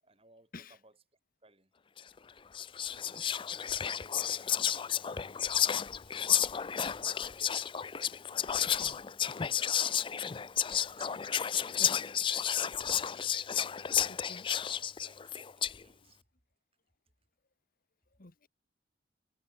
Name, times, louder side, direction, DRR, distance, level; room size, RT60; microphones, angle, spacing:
voice 1, 0.0-0.9 1.4-1.7 2.8-8.0 10.5-12.5 15.0-16.2, right 3 dB, 30° right, 7.2 m, -65 dB
Whispering, 2.0-2.2 2.5-15.8, left 9 dB, 25° left, 0.4 m, -32 dB
voice 2, 8.6-9.0 10.3-10.5 14.1-14.6 16.0-16.1 18.2-18.5, left 3 dB, 45° left, 1.3 m, -52 dB
head